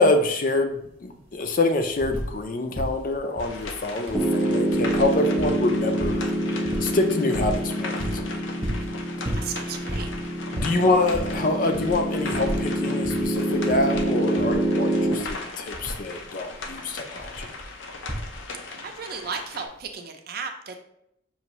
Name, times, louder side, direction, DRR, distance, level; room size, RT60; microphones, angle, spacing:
voice 1, 0.0-8.4 10.5-17.5, left 2 dB, 45° left, 6 dB, 0.4 m, -26 dB
sound 1, 0.7-0.8 1.0-2.5 2.7-18.7 19.8-19.9, equal, 30° right, 1.0 m, -35 dB
sound 2, 3.4-19.7, left 3 dB, 90° left, 0.6 m, -39 dB
Piano, 4.1-15.1, right 1 dB, 5° right, 0.6 m, -26 dB
voice 2, 9.3-10.1 18.6-20.8, right 5 dB, 50° right, 5 dB, 0.5 m, -35 dB
5.5 x 2.6 x 3.0 m, 0.76 s
head